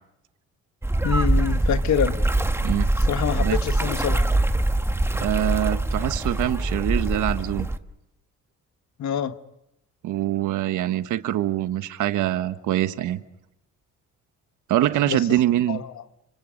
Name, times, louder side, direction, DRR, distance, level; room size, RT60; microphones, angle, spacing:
sound 1, 0.8-7.8, right 2 dB, 10° right, 1.4 m, -23 dB
voice 1, 1.0-2.2 3.1-4.3 9.0-9.3 15.1-15.2 15.7-15.9, left 8 dB, 70° left, 1.7 m, -26 dB
voice 2, 2.6-2.9 3.4-3.6 5.2-7.7 10.0-13.2 14.7-15.8, right 13 dB, 85° right, 1.4 m, -24 dB
30.0 x 26.0 x 5.2 m
cardioid pair, 90°, 30 cm